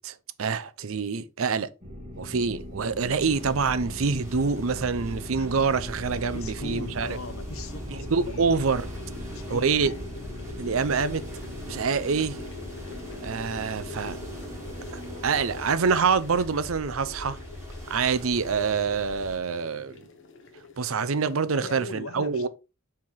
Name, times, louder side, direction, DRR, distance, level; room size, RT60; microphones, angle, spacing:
voice 1, 0.0-1.7 2.2-7.2 7.9-8.9 9.5-10.0 10.6-11.2 11.6-12.4 13.2-14.2 14.9-17.4 17.9-20.1 20.8-22.5, right 5 dB, 80° right, 0.6 m, -26 dB
sound 1, 1.8-15.6, equal, 35° right, 2.7 m, -40 dB
sound 2, 3.0-3.1 4.2-21.6, left 4 dB, 65° left, 1.2 m, -46 dB
sound 3, 3.3-19.4, equal, 15° right, 3.7 m, -42 dB
voice 2, 6.3-8.6 9.2-10.0 21.5-22.5, left 2 dB, 85° left, 0.9 m, -39 dB
5.7 x 4.4 x 4.6 m
head